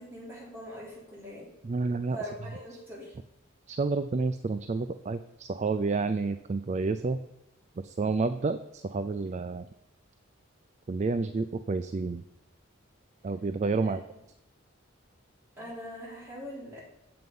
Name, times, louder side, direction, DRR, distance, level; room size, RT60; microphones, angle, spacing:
voice 1, 0.0-1.5 2.1-3.1 13.8-14.0 15.6-16.8, equal, 10° right, -7 dB, 3.9 m, -42 dB
voice 2, 1.6-2.2 3.7-7.2 7.8-9.7 10.9-12.2 13.2-14.0, right 3 dB, 35° right, 10 dB, 0.3 m, -30 dB
7.8 x 7.7 x 5.4 m, 0.90 s
head